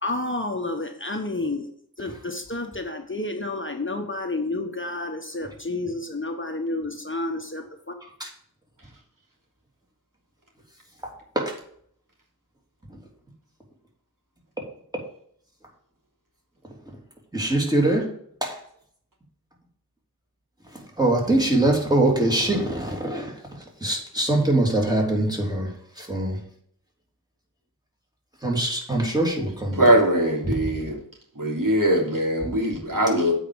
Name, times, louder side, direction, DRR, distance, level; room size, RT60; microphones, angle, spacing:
voice 1, 0.0-1.7 2.0-7.9, left 2 dB, 30° left, 4 dB, 1.2 m, -30 dB
voice 2, 17.3-18.1 18.4-18.6 21.0-23.3 23.8-25.7 26.0-26.4 28.4-29.8, right 1 dB, 10° right, 0 dB, 3.1 m, -22 dB
voice 3, 29.7-31.0 31.4-33.3, right 1 dB, 60° right, -2 dB, 3.1 m, -21 dB
8.3 x 5.1 x 7.0 m, 0.63 s
wide cardioid pair, 45°, 37 cm